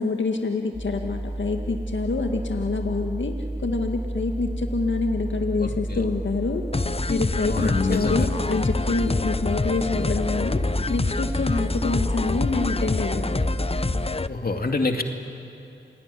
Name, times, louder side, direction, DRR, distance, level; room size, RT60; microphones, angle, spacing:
voice 1, 0.0-3.3 3.6-6.6 7.1-10.6 10.9-13.4, left 3 dB, 70° left, 4 dB, 1.8 m, -26 dB
sound 1, 0.7-14.1, right 1 dB, 10° right, 5.6 m, -31 dB
voice 2, 5.6-6.0 7.5-8.3 14.3-15.0, left 3 dB, 50° left, 4 dB, 2.5 m, -26 dB
sound 2, 6.7-14.3, left 3 dB, 30° left, 0.8 m, -27 dB
28.0 x 20.5 x 9.8 m, 2.7 s
cardioid pair, 45°, 20 cm